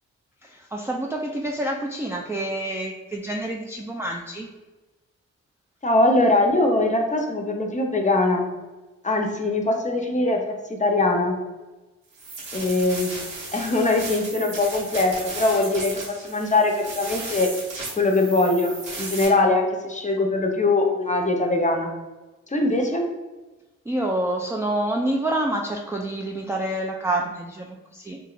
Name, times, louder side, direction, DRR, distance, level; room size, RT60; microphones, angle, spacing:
voice 1, 0.4-4.5 23.9-28.2, right 1 dB, 10° right, 0 dB, 0.3 m, -27 dB
voice 2, 5.8-8.5 9.0-11.4 12.5-13.1 13.5-17.5 18.0-21.9 22.5-23.1, left 2 dB, 25° left, 2 dB, 0.6 m, -22 dB
sound 1, 12.1-19.3, right 3 dB, 75° right, 1.1 m, -35 dB
2.8 x 2.6 x 2.4 m, 1.2 s
supercardioid pair, 40°, 33 cm